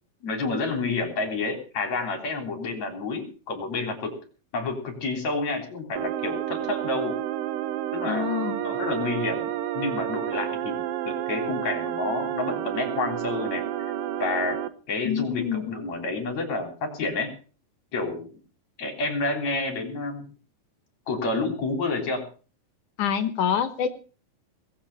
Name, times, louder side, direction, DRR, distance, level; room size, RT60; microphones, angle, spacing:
voice 1, 0.2-4.1 4.5-7.1 7.9-13.6 14.2-14.6 14.9-17.3 17.9-18.3 18.8-20.2 21.1-22.2, left 3 dB, 55° left, 4 dB, 4.8 m, -29 dB
sound 1, 6.0-14.7, right 11 dB, 85° right, 2.7 m, -30 dB
voice 2, 8.1-8.6 15.0-15.7 23.0-23.9, left 8 dB, 70° left, 10 dB, 2.5 m, -26 dB
20.5 x 7.9 x 7.2 m, 0.39 s
omnidirectional pair, 3.9 m